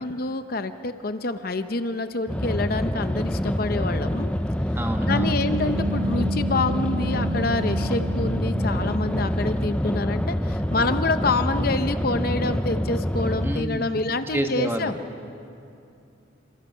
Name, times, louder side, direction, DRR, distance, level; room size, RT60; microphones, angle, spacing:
voice 1, 0.0-4.3 5.1-15.0, left 3 dB, 45° left, 9 dB, 0.7 m, -27 dB
sound 1, 2.3-13.6, equal, 5° left, 0.5 m, -26 dB
voice 2, 4.7-5.4 13.4-14.0 14.3-14.9, equal, 10° right, 4 dB, 1.4 m, -28 dB
sound 2, 5.1-9.7, right 1 dB, 70° right, 6.5 m, -31 dB
28.0 x 26.0 x 5.6 m, 2.6 s
head